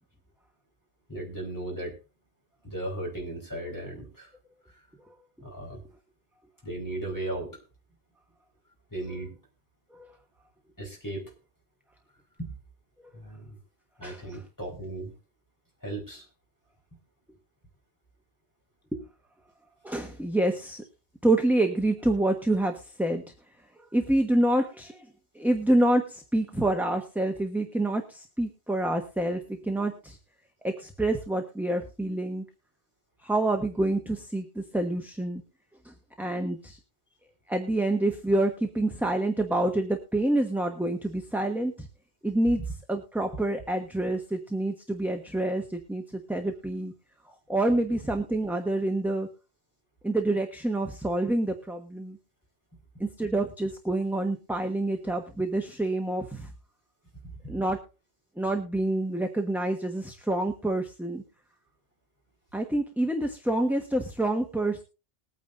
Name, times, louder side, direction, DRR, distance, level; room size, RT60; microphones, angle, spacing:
voice 1, 1.1-2.0 2.6-4.3 5.4-5.8 6.6-7.6 8.9-9.4 10.8-11.3 12.4-12.6 13.1-13.6 14.0-15.1 15.8-16.3 42.6-42.7 57.2-57.5, right 1 dB, 15° left, -1 dB, 4.6 m, -36 dB
voice 2, 14.0-14.4 18.9-19.0 19.8-20.8 21.2-23.2 23.9-25.1 25.3-30.2 30.6-32.4 33.2-35.4 35.8-36.8 37.5-41.9 42.2-42.6 42.9-46.9 47.3-49.3 50.0-52.2 53.0-56.5 57.5-57.8 58.4-61.2 62.5-64.8, right 1 dB, ahead, 3 dB, 1.1 m, -27 dB
21.0 x 9.2 x 2.6 m, 0.32 s
omnidirectional pair, 1.2 m